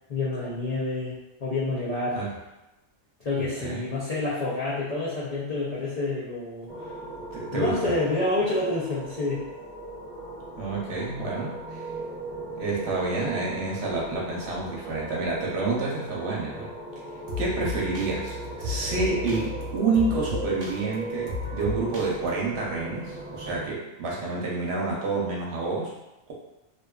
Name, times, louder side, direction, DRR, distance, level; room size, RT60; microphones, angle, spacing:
voice 1, 0.1-1.2 1.4-2.2 3.2-6.9 7.5-9.4, left 2 dB, 60° left, -9 dB, 0.4 m, -28 dB
voice 2, 3.4-3.9 7.3-7.9 10.6-11.9 12.6-16.7 17.4-25.9, right 3 dB, 70° right, -3 dB, 0.8 m, -29 dB
sound 1, 6.7-23.7, right 2 dB, 45° right, 0.7 m, -38 dB
sound 2, 13.4-22.3, left 2 dB, 90° right, 0.9 m, -37 dB
2.6 x 2.2 x 2.2 m, 0.98 s
omnidirectional pair, 1.2 m